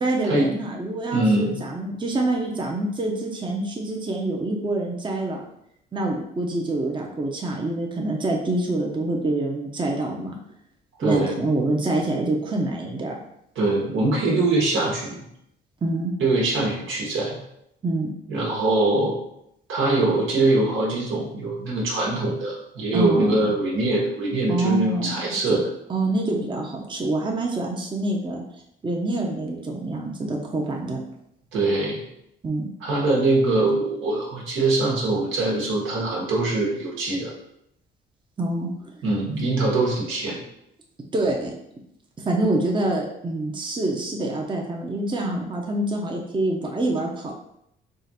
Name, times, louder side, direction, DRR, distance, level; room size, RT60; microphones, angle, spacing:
voice 1, 0.0-5.4 5.9-10.4 11.0-13.2 15.8-16.1 17.8-18.1 22.9-23.5 24.5-25.1 25.5-25.6 25.9-28.4 28.8-31.0 32.4-32.7 38.4-38.9 41.1-41.5 42.3-47.3, right 2 dB, 25° right, 0 dB, 0.7 m, -26 dB
voice 2, 1.1-1.5 11.0-11.4 13.5-15.2 16.2-17.4 18.3-19.1 19.7-25.7 31.5-32.0 32.8-37.3 39.0-40.4, right 2 dB, 80° right, -2 dB, 1.3 m, -23 dB
3.7 x 2.5 x 4.2 m, 0.77 s
cardioid pair, 90°, 20 cm